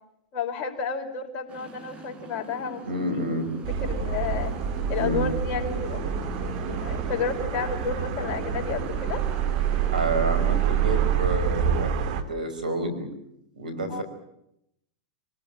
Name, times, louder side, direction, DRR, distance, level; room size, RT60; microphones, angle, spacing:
voice 1, 0.3-2.8 3.1-3.5 3.8-4.5 4.9-6.1 6.4-9.2 13.9-14.0, left 5 dB, 40° left, 3 dB, 5.0 m, -31 dB
Motorcycle, 1.5-11.2, right 3 dB, 30° right, 5.2 m, -39 dB
voice 2, 2.9-3.5 5.0-5.3 9.9-13.1 13.6-14.0, right 1 dB, 85° right, 9 dB, 5.5 m, -29 dB
sound 1, 3.6-12.2, right 8 dB, 60° right, 2.9 m, -27 dB
25.5 x 19.0 x 8.9 m, 0.77 s
hypercardioid pair, 100°, 4 cm